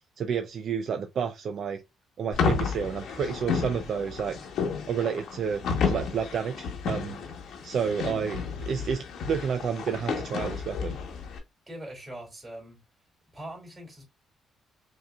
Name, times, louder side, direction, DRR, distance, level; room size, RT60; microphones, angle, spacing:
voice 1, 0.2-1.8 2.2-4.4 4.9-7.2 7.6-11.0, right 7 dB, 60° right, 0.4 m, -30 dB
sound 1, 2.3-11.4, left 6 dB, 75° left, 1.1 m, -32 dB
voice 2, 11.7-12.8 13.3-14.0, right 1 dB, 25° right, 2.6 m, -42 dB
5.3 x 2.7 x 2.3 m
cardioid pair, 90°, 0 cm